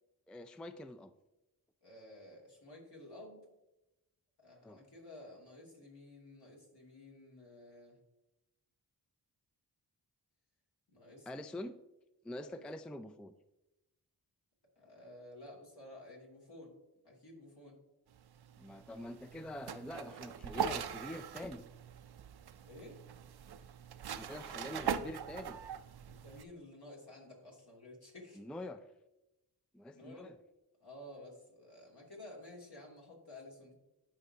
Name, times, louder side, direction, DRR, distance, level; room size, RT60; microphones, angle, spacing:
voice 1, 0.3-1.1 4.6-4.8 11.3-11.8 12.2-13.3 18.6-21.7 24.1-25.6 28.3-28.9 29.7-30.4, left 1 dB, ahead, 11 dB, 0.3 m, -45 dB
voice 2, 1.8-3.4 4.4-8.0 10.9-11.3 11.5-11.7 12.4-12.6 14.8-16.8 17.0-17.8 22.6-23.0 24.3-24.4 26.0-28.4 29.9-30.3 30.8-33.7, left 1 dB, 65° left, -3 dB, 2.5 m, -53 dB
sound 1, 18.1-26.4, right 8 dB, 65° right, 0.5 m, -42 dB
11.5 x 5.0 x 2.8 m, 0.94 s
cardioid pair, 40°, 42 cm